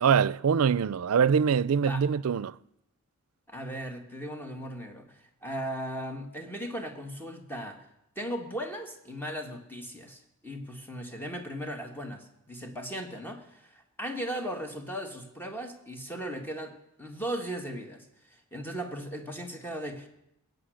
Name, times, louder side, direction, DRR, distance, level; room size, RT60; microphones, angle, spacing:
voice 1, 0.0-2.6, right 7 dB, 85° right, 0.4 m, -24 dB
voice 2, 3.5-7.9 8.1-20.1, equal, 10° left, 1.6 m, -37 dB
21.0 x 8.3 x 6.4 m
head